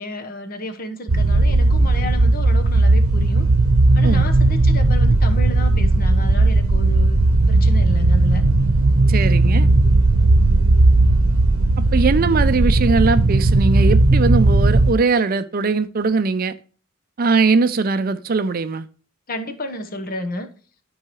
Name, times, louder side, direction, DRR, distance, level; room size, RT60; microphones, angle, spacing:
voice 1, 0.0-3.5 3.9-7.2 7.5-8.4 19.3-20.5, left 1 dB, 40° left, 1.0 m, -31 dB
sound 1, 1.1-14.9, right 2 dB, 85° right, 0.7 m, -16 dB
voice 2, 9.1-9.7 11.9-16.5 17.2-18.9, right 4 dB, 45° right, 0.5 m, -20 dB
12.5 x 4.7 x 3.0 m
head